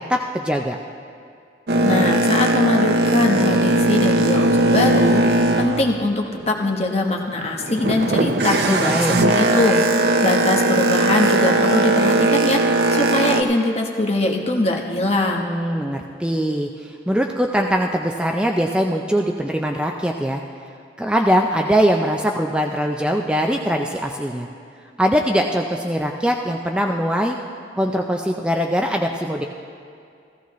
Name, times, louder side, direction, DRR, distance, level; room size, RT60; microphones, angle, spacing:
voice 1, 0.1-0.8 8.6-9.1 15.4-20.4 21.0-24.5 25.0-27.4 27.8-29.4, equal, 5° right, 2 dB, 0.4 m, -21 dB
Boat Water vehicle, 1.7-6.7 7.1-13.4, right 2 dB, 65° right, 0.7 m, -19 dB
voice 2, 1.8-12.6 12.9-15.5, left 2 dB, 35° left, 1 dB, 1.0 m, -22 dB
15.0 x 15.0 x 3.1 m, 2.3 s
head